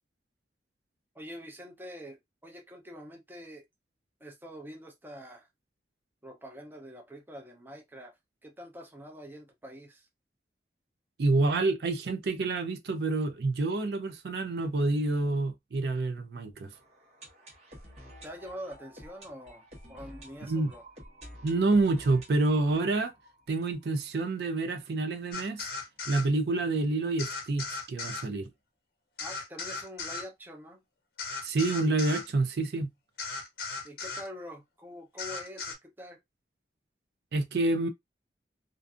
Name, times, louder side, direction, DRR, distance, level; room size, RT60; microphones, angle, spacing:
voice 1, 1.1-3.7 4.2-5.5 6.2-10.1 18.2-20.8 29.2-30.8 33.8-36.2, equal, 10° right, 0.6 m, -45 dB
voice 2, 11.2-16.7 20.5-20.7 21.4-23.1 23.5-25.7 26.1-28.5 31.4-32.9 37.3-37.9, right 2 dB, 65° right, 0.4 m, -28 dB
sound 1, 16.7-24.5 24.8-24.9 25.0-25.1 25.7-25.8, equal, 40° right, 1.1 m, -51 dB
sound 2, 25.3-26.3 27.2-28.3 29.2-30.3 31.2-32.3 33.2-34.3 35.2-35.8, left 4 dB, 60° left, 0.8 m, -37 dB
2.5 x 2.5 x 2.4 m
head